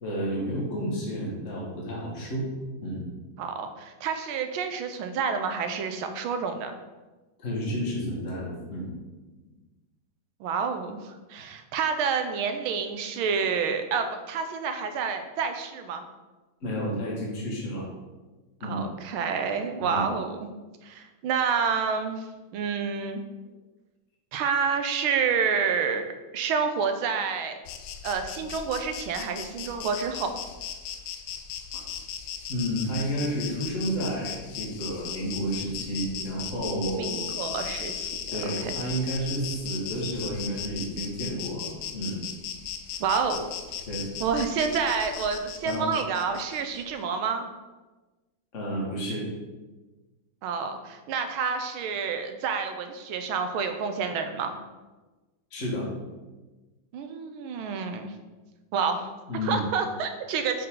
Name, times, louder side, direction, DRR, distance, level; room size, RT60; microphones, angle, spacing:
voice 1, 0.0-2.5 2.8-3.0 7.4-8.9 16.6-17.9 18.6-18.8 19.8-20.1 32.5-37.3 38.3-42.2 43.9-44.1 45.6-45.9 48.5-49.3 55.5-55.9 59.3-59.6, equal, 35° left, -4 dB, 2.0 m, -31 dB
voice 2, 3.4-6.7 10.4-16.0 18.6-20.5 20.8-22.2 22.5-23.2 24.3-27.6 28.0-30.3 36.9-38.7 43.0-43.5 44.2-47.4 50.4-54.6 56.9-58.1 58.7-59.1 59.4-60.7, right 6 dB, 85° right, 7 dB, 1.5 m, -29 dB
Insect, 27.6-46.8, left 8 dB, 85° left, 1.4 m, -37 dB
7.1 x 5.6 x 3.8 m, 1.2 s
omnidirectional pair, 2.3 m